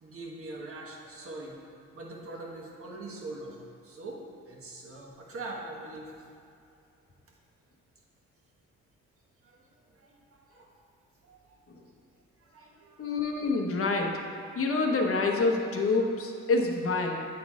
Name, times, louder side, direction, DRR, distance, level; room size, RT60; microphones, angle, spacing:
voice 1, 0.0-1.6 1.9-4.2 4.5-6.1 9.4-10.7 11.3-11.6 12.4-13.3, right 2 dB, 50° right, -2 dB, 1.3 m, -43 dB
voice 2, 13.0-14.2 14.5-17.2, left 3 dB, 50° left, 2 dB, 0.9 m, -27 dB
8.4 x 4.1 x 3.6 m, 2.6 s
cardioid pair, 90°, 30 cm